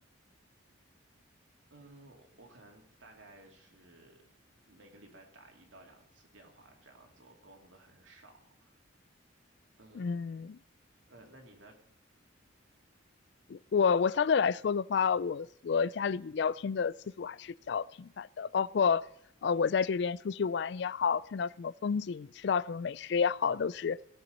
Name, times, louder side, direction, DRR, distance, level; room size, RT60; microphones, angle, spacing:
voice 1, 1.7-4.2 4.7-8.8 9.8-10.2 11.1-11.8, right 2 dB, 70° right, 2 dB, 2.6 m, -57 dB
voice 2, 10.0-10.6 13.5-19.0 19.4-24.0, left 6 dB, 60° left, 21 dB, 0.3 m, -30 dB
17.5 x 7.0 x 5.3 m, 0.76 s
head